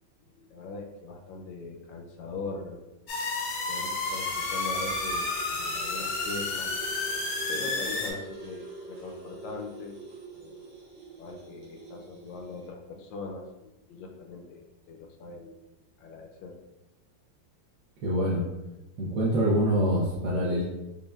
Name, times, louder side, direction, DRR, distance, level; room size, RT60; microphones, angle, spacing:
voice 1, 0.2-2.8 3.7-6.7 7.5-10.0 10.3-10.6 11.2-15.6 16.0-16.6, left 4 dB, 80° left, 2 dB, 1.3 m, -41 dB
sound 1, 3.1-8.1, left 3 dB, 65° left, 1.0 m, -31 dB
sound 2, 3.9-12.7, right 1 dB, 35° right, 1.1 m, -44 dB
voice 2, 18.0-18.4 19.0-20.6, equal, 65° right, -7 dB, 0.9 m, -25 dB
5.2 x 2.2 x 2.3 m, 0.99 s
omnidirectional pair, 2.0 m